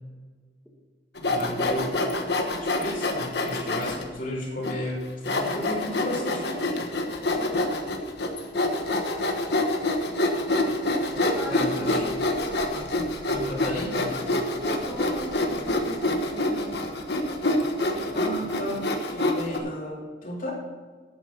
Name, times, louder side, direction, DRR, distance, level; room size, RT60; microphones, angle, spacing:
Sawing, 1.2-4.0 4.6-4.7 5.2-19.6, left 2 dB, 60° left, 1.4 m, -26 dB
voice 1, 1.2-1.9 2.6-6.9 11.4-12.1 12.7-14.3 18.1-18.8 19.1-20.5, left 1 dB, 45° left, -3 dB, 2.9 m, -34 dB
voice 2, 11.1-12.1 14.8-16.7, equal, 5° right, -4 dB, 1.8 m, -38 dB
11.0 x 8.5 x 5.8 m, 1.5 s
head